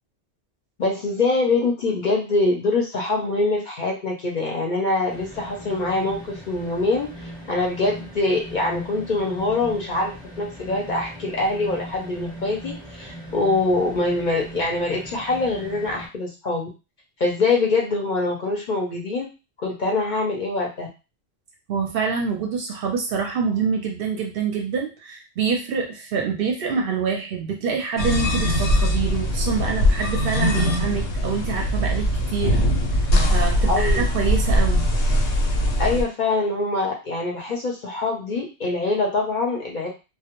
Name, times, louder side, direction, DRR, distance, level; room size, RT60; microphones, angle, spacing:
voice 1, 0.8-16.7 17.2-19.3 19.6-20.9 33.7-34.1 35.8-39.9, left 3 dB, 55° left, 0 dB, 0.6 m, -24 dB
sound 1, 5.1-16.1, equal, 5° left, 0.7 m, -39 dB
voice 2, 21.7-32.6 33.3-34.9, right 5 dB, 65° right, 2 dB, 0.7 m, -26 dB
sound 2, 28.0-36.0, equal, 85° left, 0.9 m, -21 dB
2.2 x 2.1 x 2.9 m, 0.29 s
omnidirectional pair, 1.1 m